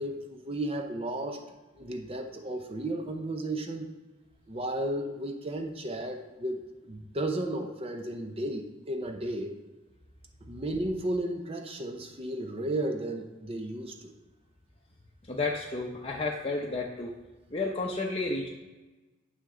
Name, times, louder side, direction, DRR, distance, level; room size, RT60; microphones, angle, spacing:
voice 1, 0.0-1.4 1.8-3.9 4.5-9.6 10.5-14.1, right 1 dB, 30° right, 4 dB, 0.7 m, -34 dB
voice 2, 15.3-17.1 17.5-18.5, left 3 dB, 25° left, -1 dB, 0.7 m, -31 dB
9.4 x 5.7 x 3.8 m, 1.2 s
head